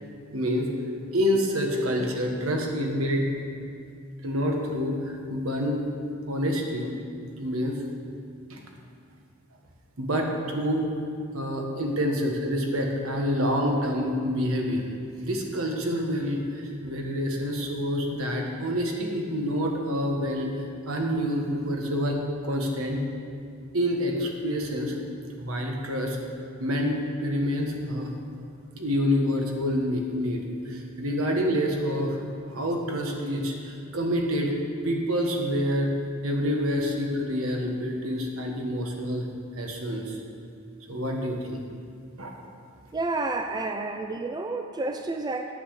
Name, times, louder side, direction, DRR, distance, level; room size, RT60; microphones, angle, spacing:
voice 1, 0.3-0.7 1.1-3.2 4.2-5.8 6.3-6.9 7.4-7.8 8.5-8.6 10.0-10.9 11.3-14.8 15.2-20.5 20.9-23.0 23.7-25.0 25.4-26.2 26.6-28.1 28.7-32.2 32.5-34.6 34.8-35.9 36.2-39.3 39.6-40.2 40.9-41.6 42.2-42.3, equal, 75° right, 1 dB, 1.5 m, -27 dB
voice 2, 42.9-45.5, right 3 dB, 20° right, 6 dB, 0.4 m, -30 dB
9.8 x 7.8 x 6.5 m, 2.4 s
head